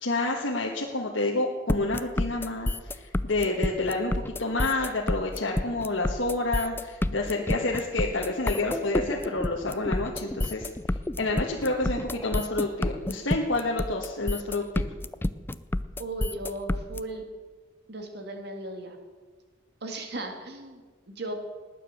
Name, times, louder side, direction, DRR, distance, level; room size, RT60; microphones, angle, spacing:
voice 1, 0.0-14.9, left 2 dB, 75° left, -2 dB, 1.5 m, -29 dB
sound 1, 1.7-17.0, left 1 dB, 10° left, 0.4 m, -29 dB
voice 2, 16.0-17.2 17.9-19.0 19.8-21.3, right 2 dB, 55° right, 4 dB, 2.2 m, -36 dB
19.0 x 9.2 x 6.7 m, 1.5 s
head